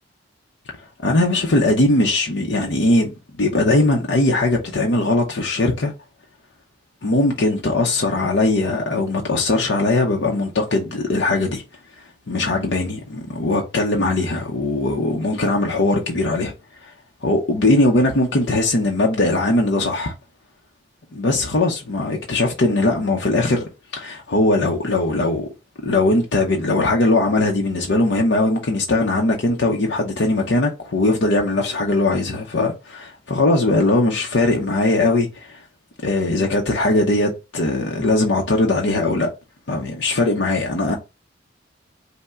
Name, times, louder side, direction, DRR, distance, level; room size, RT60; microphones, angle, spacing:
voice 1, 1.0-5.9 7.0-11.6 12.0-16.5 16.8-16.9 17.2-20.1 21.1-25.5 25.8-35.6 36.0-39.3 39.7-40.9, left 2 dB, 60° left, 0.7 m, -20 dB
5.4 x 2.1 x 3.6 m
head